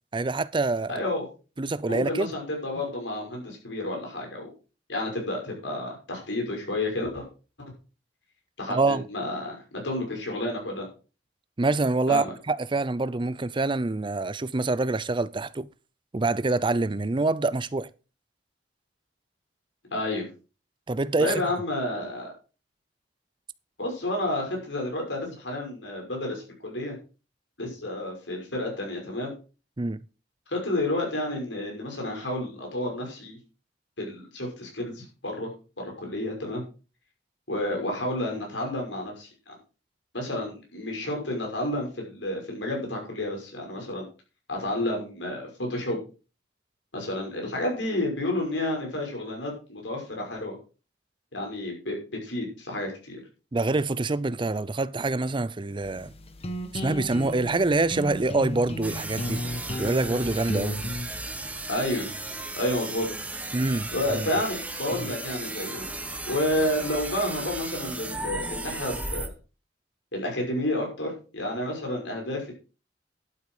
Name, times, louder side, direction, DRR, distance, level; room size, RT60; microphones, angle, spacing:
voice 1, 0.1-1.0 1.6-2.3 8.7-9.1 11.6-15.7 16.1-17.9 20.9-21.4 29.8-30.0 53.5-56.1 56.8-59.4 59.8-60.8 63.5-63.9 64.2-64.3, right 3 dB, 25° right, 0.5 m, -26 dB
voice 2, 0.9-1.2 1.9-4.5 4.9-7.3 8.6-9.6 9.8-10.9 12.1-12.3 19.9-20.3 21.2-22.3 23.8-26.9 27.6-29.3 30.5-33.4 34.0-35.5 35.8-36.6 37.5-39.6 40.1-44.1 44.5-46.0 46.9-50.5 51.3-52.0 52.2-53.2 61.7-62.1 62.6-63.1 63.9-65.8 66.3-69.3 70.1-72.5, left 1 dB, 90° left, 5.9 m, -30 dB
sound 1, 55.8-61.1, left 1 dB, 35° left, 1.3 m, -34 dB
sound 2, 58.8-69.3, right 2 dB, 10° right, 1.1 m, -35 dB
12.0 x 8.4 x 4.9 m
head